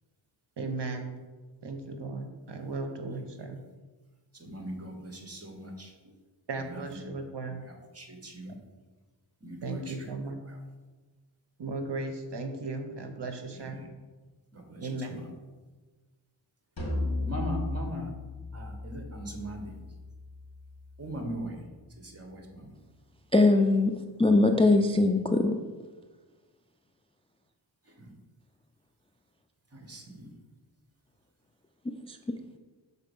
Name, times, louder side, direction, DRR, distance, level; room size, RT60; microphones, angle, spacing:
voice 1, 0.6-1.1 1.6-3.6 6.5-7.6 8.4-8.5 9.6-10.4 11.6-13.8 14.8-15.2, right 3 dB, 60° right, 5 dB, 0.8 m, -36 dB
voice 2, 4.4-5.9 6.5-7.1 7.5-8.6 9.4-10.1 10.5-10.6 13.5-13.9 14.5-15.3 17.3-18.1 18.5-19.8 21.0-21.6 22.0-22.7 27.9-28.1 29.7-30.3, equal, 30° right, 3 dB, 1.3 m, -40 dB
sound 1, 16.8-22.2, left 2 dB, 50° left, 1.8 m, -37 dB
voice 3, 23.3-23.9 24.2-25.6 32.1-32.2, left 2 dB, 15° left, 5 dB, 0.3 m, -21 dB
5.7 x 4.1 x 5.3 m, 1.3 s
wide cardioid pair, 65°, 46 cm